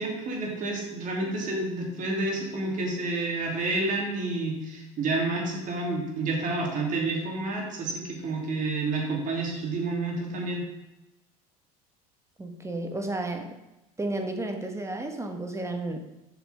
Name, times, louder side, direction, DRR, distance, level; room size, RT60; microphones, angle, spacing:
voice 1, 0.0-10.7, right 2 dB, 45° right, -1 dB, 3.3 m, -29 dB
voice 2, 12.4-13.5 14.0-16.0, right 2 dB, 15° right, 5 dB, 1.3 m, -32 dB
8.1 x 5.9 x 5.4 m, 0.98 s
hypercardioid pair, 85°, 19 cm